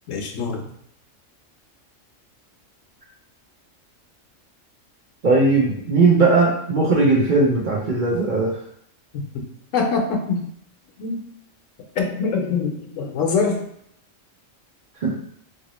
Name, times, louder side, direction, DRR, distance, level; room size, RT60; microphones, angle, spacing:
voice 1, 0.1-0.7 9.3-9.4 9.7-10.4 11.0-11.2 12.0-13.6, left 4 dB, 75° left, 2 dB, 1.0 m, -24 dB
voice 2, 5.2-8.6 15.0-15.1, right 3 dB, 50° right, -4 dB, 0.6 m, -18 dB
2.8 x 2.8 x 2.9 m, 0.69 s
omnidirectional pair, 1.3 m